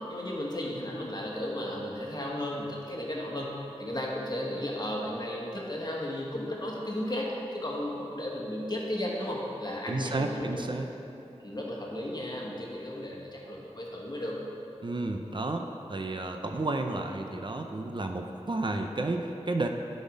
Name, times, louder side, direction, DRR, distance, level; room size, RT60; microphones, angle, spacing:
voice 1, 0.1-3.5 3.8-10.6 11.4-14.4, left 1 dB, 40° left, -3 dB, 1.4 m, -34 dB
voice 2, 9.9-10.9 14.8-19.7, right 2 dB, 45° right, 4 dB, 0.5 m, -32 dB
10.0 x 4.2 x 5.1 m, 2.9 s
wide cardioid pair, 60°, 11 cm